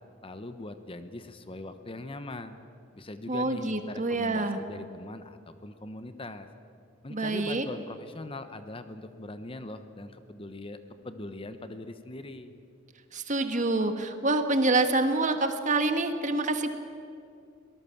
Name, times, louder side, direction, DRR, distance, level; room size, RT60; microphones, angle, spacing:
voice 1, 0.2-2.6 2.9-6.5 7.0-10.8 11.0-12.5, left 2 dB, 30° left, 10 dB, 1.0 m, -41 dB
voice 2, 3.3-4.6 7.1-7.6 13.1-16.7, right 2 dB, 40° right, 7 dB, 1.5 m, -26 dB
23.0 x 18.5 x 7.2 m, 2.4 s
head